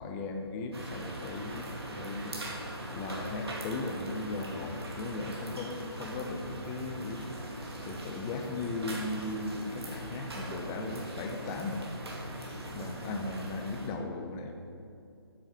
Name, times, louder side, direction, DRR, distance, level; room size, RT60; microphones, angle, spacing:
voice 1, 0.0-2.5 2.9-7.3 7.8-11.8 12.6-14.5, left 3 dB, 15° left, 5 dB, 0.6 m, -37 dB
sound 1, 0.7-13.9, right 1 dB, 70° right, 2.5 m, -41 dB
sound 2, 7.2-10.1 10.4-10.5 10.9-11.1 11.4-11.8 12.0-12.2, equal, 5° right, 2.7 m, -54 dB
9.2 x 8.7 x 5.9 m, 2.6 s
figure-of-eight pair, 150°, 14 cm